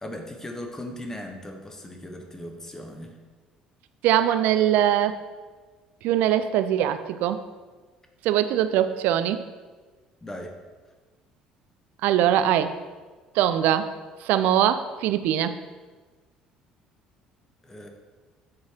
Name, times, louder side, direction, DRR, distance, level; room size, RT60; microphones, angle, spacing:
voice 1, 0.0-3.1 10.2-10.5 17.6-17.9, left 1 dB, 15° left, 4 dB, 1.2 m, -38 dB
voice 2, 4.0-5.2 6.0-7.4 8.2-9.4 12.0-12.7 13.3-13.9 14.2-15.6, right 11 dB, 60° right, 11 dB, 0.4 m, -22 dB
8.4 x 4.7 x 4.4 m, 1.4 s
figure-of-eight pair, 55°, 3 cm